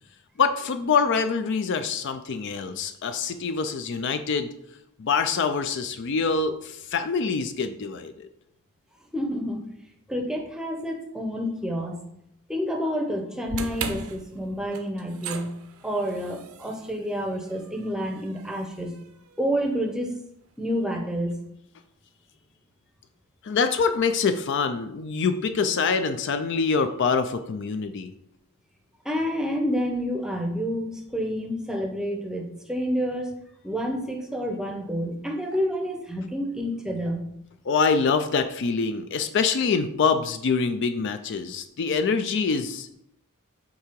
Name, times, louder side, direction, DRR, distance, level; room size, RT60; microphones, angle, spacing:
voice 1, 0.4-4.5 5.0-8.3 23.4-28.1 37.7-42.9, left 5 dB, 55° left, 9 dB, 0.4 m, -25 dB
voice 2, 9.1-9.6 10.1-12.0 12.5-15.5 15.8-19.0 19.4-20.2 20.6-21.3 29.0-33.4 33.6-37.2, equal, 5° right, 3 dB, 0.7 m, -29 dB
sound 1, 13.5-19.7, right 5 dB, 65° right, 0.6 m, -39 dB
8.4 x 2.8 x 4.6 m, 0.76 s
head